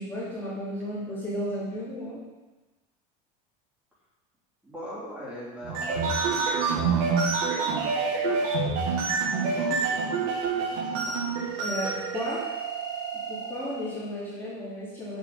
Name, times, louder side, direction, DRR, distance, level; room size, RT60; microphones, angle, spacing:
voice 1, 0.0-2.2 8.9-9.0 11.6-12.4 13.3-15.2, equal, 15° left, -11 dB, 2.8 m, -34 dB
voice 2, 4.6-8.6 9.0-11.7, equal, 5° right, -9 dB, 3.4 m, -42 dB
sound 1, 5.6-13.9, right 4 dB, 60° right, 1.5 m, -27 dB
7.4 x 7.1 x 5.5 m, 1.2 s
supercardioid pair, 155°, 18 cm